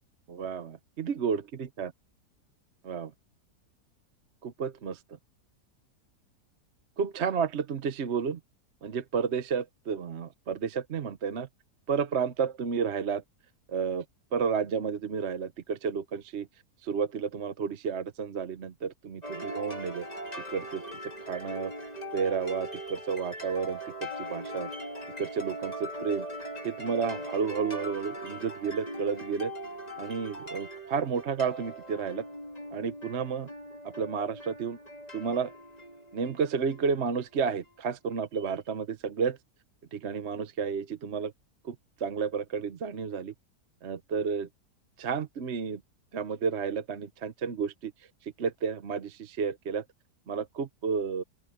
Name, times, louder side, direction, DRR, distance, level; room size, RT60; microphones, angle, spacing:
voice 1, 0.3-1.4 1.8-1.9 2.8-3.1 4.4-5.0 7.0-8.4 8.8-11.5 11.9-13.2 13.7-14.0 14.3-16.5 16.8-20.1 20.5-21.7 22.1-24.7 25.2-26.3 26.6-29.5 30.0-32.3 32.7-33.5 33.8-34.8 35.1-35.5 36.1-39.4 39.9-41.3 41.6-41.7 42.0-43.3 43.8-44.5 45.0-45.8 46.1-47.9 48.2-49.8 50.3-51.2, right 6 dB, 45° right, 1.1 m, -31 dB
sound 1, 19.2-37.1, equal, 25° left, 3.1 m, -40 dB
open air
omnidirectional pair, 1.7 m